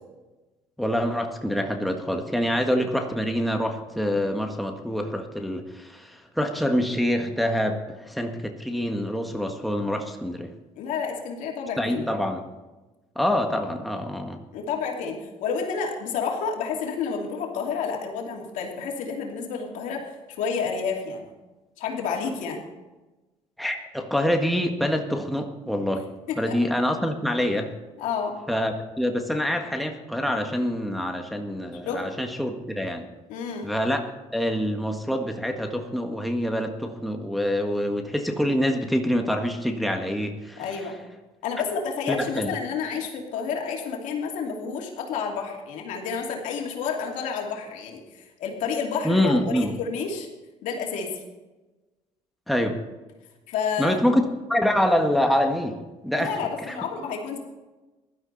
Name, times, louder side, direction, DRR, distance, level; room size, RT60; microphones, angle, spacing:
voice 1, 0.8-10.5 11.8-12.5 13.1-14.4 23.6-26.0 26.4-27.7 28.5-33.1 33.6-34.0 34.3-40.6 42.1-42.5 49.0-49.7 52.5-52.8 53.8-56.3 56.7-56.8, equal, ahead, 3 dB, 1.6 m, -26 dB
voice 2, 10.7-12.1 14.5-21.3 21.8-22.6 26.3-26.6 28.0-28.3 31.8-32.0 33.3-33.7 40.6-40.9 41.4-50.3 50.6-51.2 53.5-54.0 56.2-57.4, left 6 dB, 75° left, 1 dB, 2.7 m, -30 dB
16.0 x 12.0 x 4.1 m, 1.1 s
supercardioid pair, 85°, 13 cm